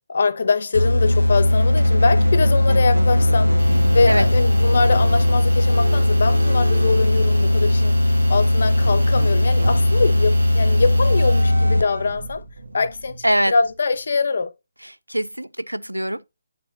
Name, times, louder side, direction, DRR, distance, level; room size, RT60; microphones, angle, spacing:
voice 1, 0.1-3.6 3.9-8.0 8.3-12.4 12.7-14.5, left 4 dB, 50° left, 0.9 m, -23 dB
sound 1, 0.7-12.1, left 1 dB, 80° left, 0.4 m, -18 dB
Squeak, 1.5-7.9 8.8-14.0, right 2 dB, 70° right, 1.4 m, -32 dB
Hiss, 3.6-11.4, right 4 dB, 50° right, 1.8 m, -41 dB
voice 2, 13.2-13.5 14.8-16.3, right 1 dB, 85° right, 0.5 m, -23 dB
9.1 x 5.9 x 2.6 m
figure-of-eight pair, 145°, 0 cm